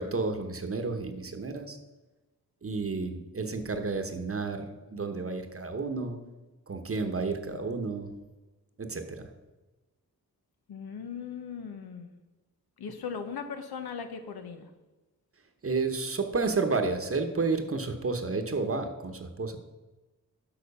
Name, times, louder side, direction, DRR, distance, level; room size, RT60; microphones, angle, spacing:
voice 1, 0.0-1.8 2.6-6.2 6.7-8.1 8.8-9.3 15.6-19.6, right 3 dB, 40° right, 7 dB, 1.0 m, -31 dB
voice 2, 10.7-12.1 12.8-14.7, left 6 dB, 85° left, 7 dB, 0.9 m, -38 dB
6.8 x 6.0 x 5.4 m, 1.1 s
cardioid pair, 55°, 36 cm